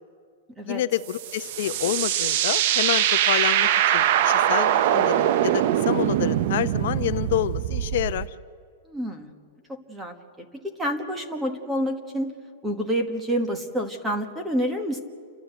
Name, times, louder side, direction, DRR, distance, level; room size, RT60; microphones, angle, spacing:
voice 1, 0.7-8.3, left 13 dB, 55° left, 14 dB, 0.6 m, -28 dB
sound 1, 1.1-8.3, right 11 dB, 45° right, 0.5 m, -22 dB
voice 2, 8.9-9.3 9.9-12.3 12.6-15.0, equal, 10° right, 5 dB, 1.4 m, -28 dB
29.5 x 12.5 x 8.0 m, 2.2 s
supercardioid pair, 170°, 0 cm